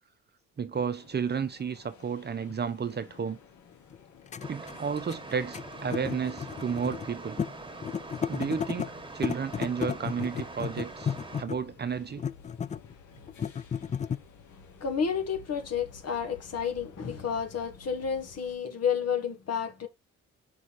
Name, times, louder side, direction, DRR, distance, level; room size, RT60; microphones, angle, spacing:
voice 1, 0.6-3.4 4.5-7.4 8.3-12.2, right 6 dB, 35° right, 0.8 m, -32 dB
sound 1, 0.7-18.6, left 5 dB, 75° left, 2.5 m, -54 dB
sound 2, 1.4-1.5 2.5-2.6 3.9-4.0 4.3-7.1 7.4-7.5 7.8-8.9 9.2-11.7 12.2-12.9 13.3-14.2, left 7 dB, 25° left, 0.4 m, -33 dB
sound 3, 4.4-11.4, right 2 dB, 15° right, 1.6 m, -43 dB
voice 2, 14.8-19.9, left 7 dB, 55° left, 1.8 m, -31 dB
5.6 x 4.2 x 4.7 m
cardioid pair, 90°, 30 cm